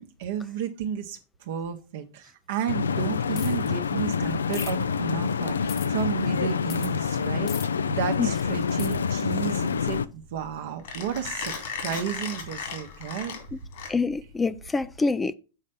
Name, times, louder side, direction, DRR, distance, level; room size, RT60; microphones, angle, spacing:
voice 1, 0.0-11.5 11.8-13.3, right 9 dB, 65° right, 0.8 m, -32 dB
sound 1, 2.7-10.1, left 6 dB, 90° left, 0.3 m, -27 dB
sound 2, 3.4-3.7 4.5-4.7 5.7-5.9 6.7-6.9 7.5-7.7 8.8-9.0, left 10 dB, 50° left, 0.9 m, -38 dB
Mechanisms, 8.2-14.3, left 6 dB, 65° left, 2.4 m, -37 dB
voice 2, 13.9-15.3, left 4 dB, 10° left, 0.3 m, -26 dB
6.5 x 4.2 x 5.1 m
hypercardioid pair, 105°, 0 cm